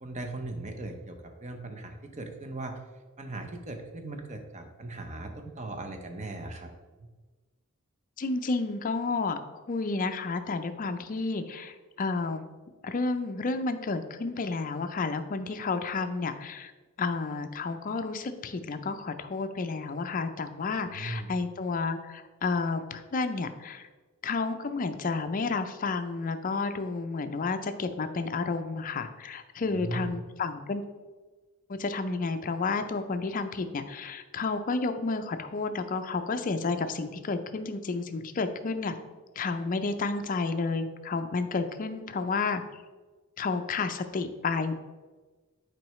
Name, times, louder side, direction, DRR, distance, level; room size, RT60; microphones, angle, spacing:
voice 1, 0.0-2.8 3.2-6.7 20.9-21.3 29.6-30.1, right 2 dB, 30° right, 5 dB, 0.7 m, -38 dB
voice 2, 8.2-9.4 9.7-12.4 12.8-16.7 17.0-23.9 24.2-30.8 31.7-39.0 39.4-42.6 43.4-44.7, left 4 dB, 35° left, 9 dB, 0.4 m, -31 dB
7.6 x 4.6 x 3.1 m, 1.3 s
head